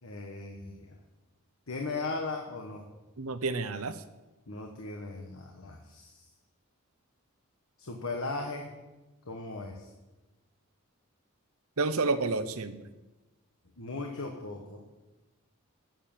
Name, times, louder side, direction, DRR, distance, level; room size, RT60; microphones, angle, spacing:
voice 1, 0.0-0.9 1.7-2.9 4.5-6.3 7.8-8.7 9.2-9.9 13.8-14.8, left 3 dB, 75° left, 1 dB, 1.4 m, -37 dB
voice 2, 3.2-3.9 11.8-12.8, right 3 dB, 85° right, 11 dB, 0.8 m, -29 dB
11.0 x 7.6 x 7.3 m, 1.1 s
head